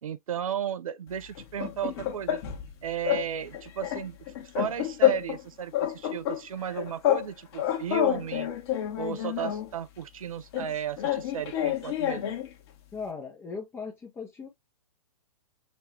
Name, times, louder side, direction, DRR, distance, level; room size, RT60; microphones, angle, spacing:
voice 1, 0.0-2.4 2.8-8.5 9.0-12.3, right 9 dB, 60° right, 0.7 m, -34 dB
sound 1, 1.4-2.7 3.0-3.3 3.5-5.4 5.7-7.3 7.5-9.7 10.5-12.5, left 12 dB, 40° left, 1.6 m, -28 dB
voice 2, 12.9-14.5, left 5 dB, 10° left, 0.9 m, -38 dB
6.1 x 2.7 x 3.0 m
figure-of-eight pair, 120°, 20 cm